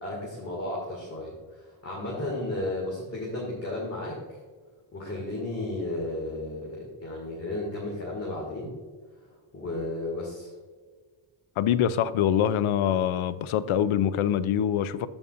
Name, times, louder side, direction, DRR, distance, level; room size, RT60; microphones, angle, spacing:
voice 1, 0.0-4.4 4.9-8.7 9.5-10.5, left 2 dB, 30° left, 2.1 m, -33 dB
voice 2, 11.6-15.1, left 10 dB, 80° left, 0.6 m, -24 dB
14.0 x 5.3 x 2.5 m
wide cardioid pair, 135°, 48 cm